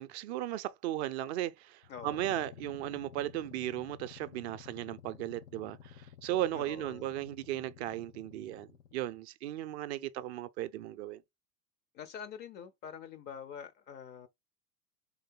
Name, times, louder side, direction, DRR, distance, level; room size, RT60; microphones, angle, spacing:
voice 1, 0.0-11.2, right 13 dB, 45° right, 0.5 m, -36 dB
sound 1, 1.8-9.2, left 9 dB, 70° left, 0.9 m, -53 dB
voice 2, 1.9-2.4 6.5-7.1 11.9-14.3, left 7 dB, 25° left, 0.4 m, -46 dB
3.9 x 3.2 x 4.2 m
figure-of-eight pair, 90°, 49 cm